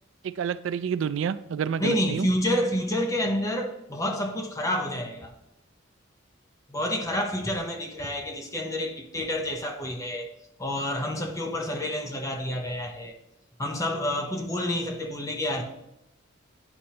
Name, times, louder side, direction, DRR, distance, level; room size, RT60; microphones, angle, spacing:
voice 1, 0.2-2.3, right 7 dB, 70° right, 0.3 m, -29 dB
voice 2, 1.8-5.3 6.7-10.3 10.6-13.2 13.6-15.6, left 1 dB, 15° left, 0.6 m, -29 dB
10.0 x 4.3 x 2.8 m
head